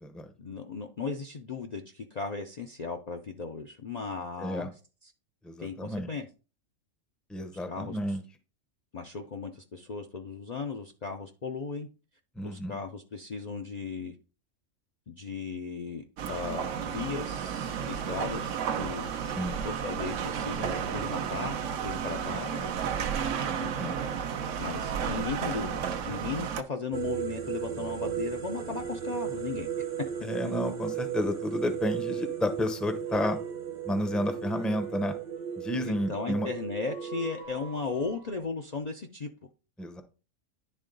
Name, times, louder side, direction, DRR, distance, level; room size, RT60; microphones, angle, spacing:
voice 1, 0.4-4.7 5.0-5.1 5.6-6.3 7.7-8.0 8.9-11.9 12.4-14.2 15.1-19.1 19.6-22.7 23.6-23.9 24.6-29.7 35.8-39.3, left 4 dB, 45° left, 3 dB, 0.6 m, -36 dB
voice 2, 4.4-4.7 5.4-6.1 7.3-8.2 12.4-12.8 19.2-19.6 23.8-24.0 30.2-33.4 33.8-35.1 35.6-36.5 39.8-40.0, left 1 dB, ahead, 7 dB, 0.6 m, -31 dB
sound 1, 16.2-26.6, right 7 dB, 75° right, 1.0 m, -32 dB
sound 2, 26.9-37.4, right 9 dB, 40° right, 0.9 m, -35 dB
sound 3, 31.8-38.3, left 1 dB, 90° left, 3.9 m, -53 dB
10.5 x 3.7 x 3.8 m, 0.34 s
omnidirectional pair, 1.3 m